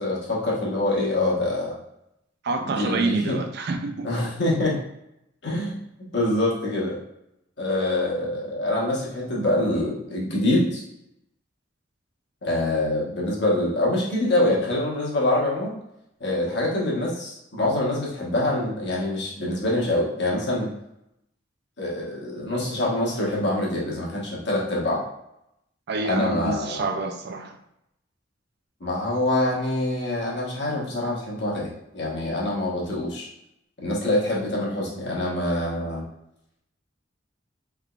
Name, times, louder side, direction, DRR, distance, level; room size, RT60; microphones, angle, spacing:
voice 1, 0.0-1.7 2.6-3.4 4.0-4.8 5.4-7.0 7.6-10.8 12.4-15.7 16.2-20.7 21.8-25.0 26.0-26.8 28.8-31.7 31.9-33.3 33.8-36.0, left 1 dB, 65° left, -4 dB, 1.2 m, -25 dB
voice 2, 2.4-4.1 25.9-27.6, right 3 dB, 60° right, 5 dB, 0.4 m, -27 dB
3.5 x 3.3 x 2.4 m, 0.82 s
head